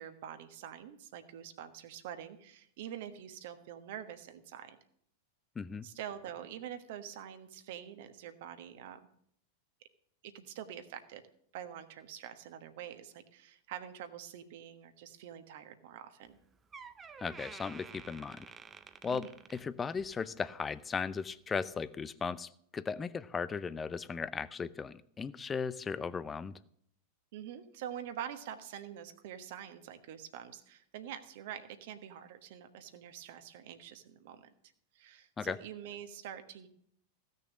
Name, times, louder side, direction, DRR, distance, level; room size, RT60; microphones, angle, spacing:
voice 1, 0.0-4.8 5.8-9.0 10.2-11.2 11.5-16.4 19.1-19.3 27.3-34.5 34.9-36.7, right 10 dB, 50° right, 9 dB, 1.3 m, -46 dB
voice 2, 5.6-5.9 17.2-18.5 19.0-26.5 35.4-35.6, left 5 dB, 15° left, 17 dB, 0.5 m, -37 dB
Door, 16.3-16.4 16.7-20.2 20.6-20.9 21.6-21.7, right 5 dB, 20° right, 0.7 m, -51 dB
16.0 x 6.6 x 7.4 m, 0.67 s
figure-of-eight pair, 90°, 0 cm